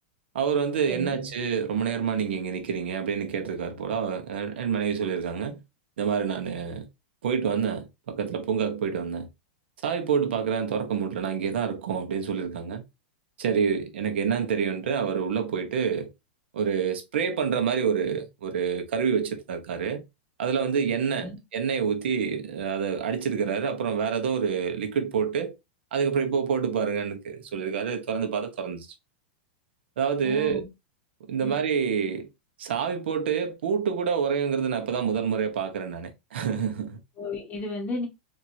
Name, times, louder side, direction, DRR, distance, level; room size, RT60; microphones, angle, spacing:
voice 1, 0.3-5.6 6.0-6.9 7.2-9.3 9.8-12.8 13.4-16.1 16.5-20.0 20.4-25.5 25.9-28.9 30.0-30.6 31.3-32.3 32.6-37.0, right 6 dB, 80° right, 1.1 m, -27 dB
voice 2, 30.2-30.7 31.4-31.5 37.2-38.1, left 2 dB, 25° left, 1.6 m, -33 dB
4.7 x 2.8 x 2.7 m
supercardioid pair, 140°, 6 cm